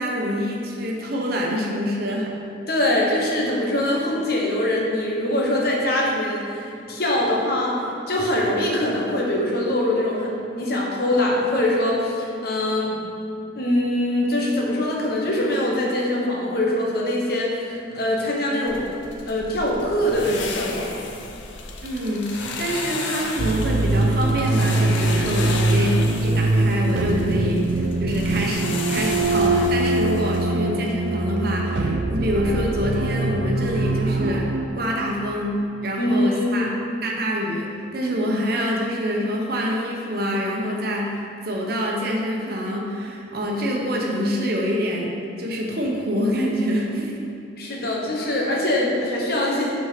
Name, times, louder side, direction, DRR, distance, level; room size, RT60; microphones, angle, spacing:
voice 1, 0.0-2.3 21.8-34.5 34.7-36.7 37.0-45.1 45.4-47.2, equal, 55° right, -1 dB, 1.0 m, -26 dB
voice 2, 2.7-13.0 13.5-18.8 19.3-21.0 36.0-36.7 47.6-49.7, left 1 dB, 55° left, -2 dB, 1.1 m, -23 dB
sound 1, 18.7-30.4, left 4 dB, 80° left, 0.6 m, -34 dB
sound 2, 23.4-34.7, right 2 dB, 75° right, 0.5 m, -22 dB
6.1 x 4.5 x 5.1 m, 2.5 s
head